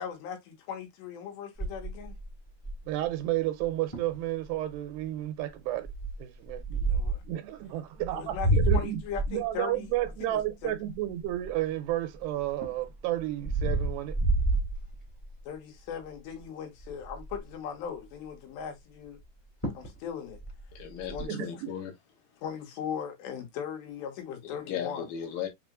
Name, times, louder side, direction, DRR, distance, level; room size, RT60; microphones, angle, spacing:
voice 1, 0.0-2.1 6.7-7.2 8.1-9.9 10.2-10.8 15.5-19.2 19.8-20.4 21.1-21.4 22.4-25.1, left 7 dB, 90° left, 3.7 m, -39 dB
sound 1, 1.6-3.0 3.6-3.7 3.9-4.2 4.7-5.0 5.8-7.3 8.0-11.9 12.4-15.4 15.9-16.1 16.4-16.5 16.8-17.5 19.2-19.3 19.6-20.0 20.3-21.2, right 2 dB, 15° left, 1.0 m, -30 dB
voice 2, 2.9-5.9 6.2-6.8 7.3-9.0 9.3-14.1 21.3-21.7, right 14 dB, 80° right, 2.7 m, -32 dB
voice 3, 20.8-21.9 24.4-25.5, left 9 dB, 70° left, 2.5 m, -36 dB
7.1 x 3.0 x 2.4 m
omnidirectional pair, 4.8 m